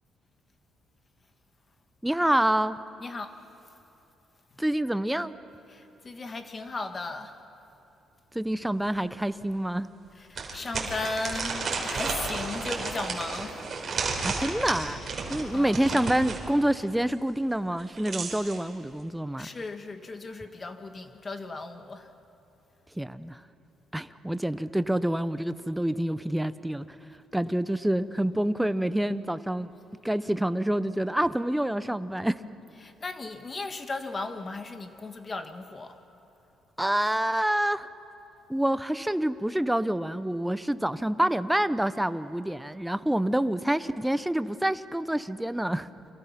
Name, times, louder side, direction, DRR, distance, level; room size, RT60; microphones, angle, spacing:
voice 1, 2.0-2.8 4.6-5.3 8.3-9.9 14.2-15.0 15.3-19.5 23.0-23.4 23.9-27.0 27.3-29.7 30.0-32.4 36.8-37.9 38.5-45.9, right 1 dB, 5° right, 13 dB, 0.7 m, -27 dB
voice 2, 3.0-3.3 5.7-7.3 10.1-13.6 15.5-15.8 19.4-22.1 32.7-36.0 43.2-43.3, left 3 dB, 30° left, 7 dB, 1.7 m, -36 dB
sound 1, 8.9-9.0 9.4-9.5 10.3-16.4 17.7-18.6, right 4 dB, 40° right, 4.6 m, -32 dB
30.0 x 24.5 x 5.9 m, 2.9 s
cardioid pair, 115°, 0 cm